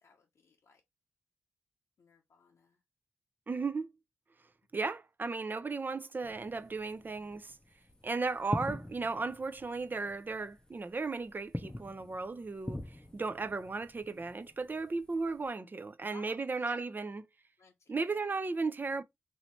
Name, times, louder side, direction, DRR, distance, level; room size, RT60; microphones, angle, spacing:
voice 1, 0.0-0.8 2.0-2.8 16.1-16.8 17.6-18.3, left 4 dB, 70° left, 0.6 m, -58 dB
voice 2, 3.5-3.9 4.7-7.6 8.0-17.2 17.9-19.0, right 4 dB, 40° right, 0.5 m, -35 dB
sound 1, 6.2-15.5, left 1 dB, 15° left, 0.6 m, -45 dB
3.1 x 2.7 x 3.0 m
cardioid pair, 50°, 5 cm